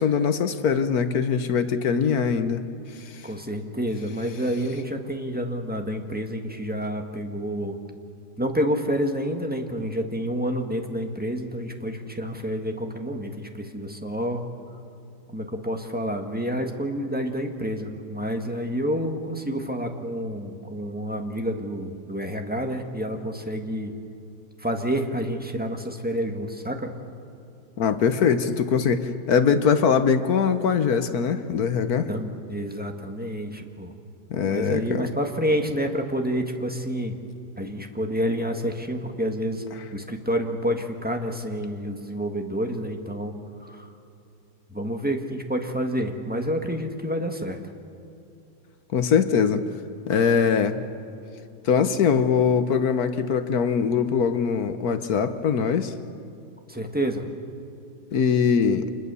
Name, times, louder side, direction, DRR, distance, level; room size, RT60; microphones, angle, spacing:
voice 1, 0.0-2.6 27.8-32.1 34.3-35.1 48.9-49.6 50.1-50.8 51.6-55.9 58.1-58.9, left 6 dB, 55° left, 9 dB, 1.3 m, -22 dB
voice 2, 3.2-7.8 8.4-14.4 15.3-23.9 24.6-26.9 32.1-33.9 34.4-37.2 37.6-39.6 39.9-43.3 43.6-43.9 44.7-47.6 56.7-57.2, equal, 5° right, 3 dB, 1.3 m, -28 dB
27.0 x 21.0 x 6.9 m, 2.7 s
omnidirectional pair, 2.1 m